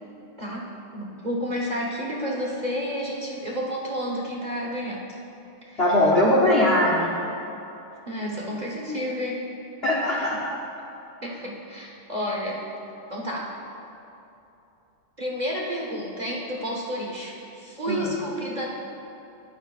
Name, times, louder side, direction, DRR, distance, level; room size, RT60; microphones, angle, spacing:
voice 1, 0.4-5.0 5.6-6.0 8.1-9.5 10.0-10.3 11.2-12.6 13.1-13.5 15.2-18.7, equal, 40° right, -3 dB, 0.6 m, -31 dB
voice 2, 5.8-7.1 9.8-10.4 17.9-18.1, left 1 dB, 85° left, -3 dB, 0.5 m, -20 dB
14.0 x 11.5 x 2.4 m, 2.8 s
omnidirectional pair, 2.4 m